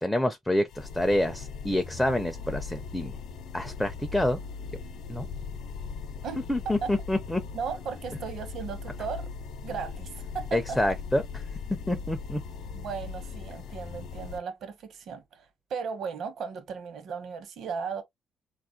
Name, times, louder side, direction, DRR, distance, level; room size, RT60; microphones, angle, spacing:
voice 1, 0.0-3.2 3.5-4.4 5.1-5.3 6.5-7.4 10.5-11.2 11.9-12.4, left 1 dB, 5° left, 0.4 m, -27 dB
sound 1, 0.7-14.4, left 5 dB, 75° left, 0.5 m, -39 dB
voice 2, 6.2-6.9 7.5-9.3 9.6-10.8 12.7-18.0, right 6 dB, 60° right, 0.8 m, -36 dB
4.0 x 2.4 x 2.5 m
cardioid pair, 150°, 0 cm